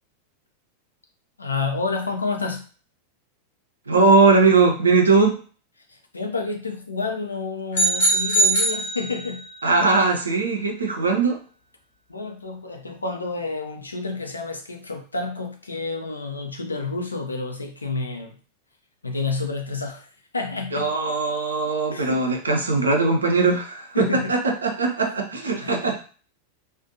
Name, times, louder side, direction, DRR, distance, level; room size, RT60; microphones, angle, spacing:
voice 1, 1.4-2.7 5.9-9.5 12.1-18.4 19.0-20.9 21.9-22.3 23.9-24.3 25.0-25.1 25.5-25.8, left 3 dB, 80° left, 3 dB, 0.5 m, -29 dB
voice 2, 3.9-5.4 9.6-11.4 20.7-26.0, right 3 dB, 75° right, 2 dB, 0.5 m, -20 dB
sound 1, 7.7-9.6, right 2 dB, 60° left, 0.9 m, -21 dB
2.4 x 2.1 x 2.6 m, 0.40 s
figure-of-eight pair, 90°, 0 cm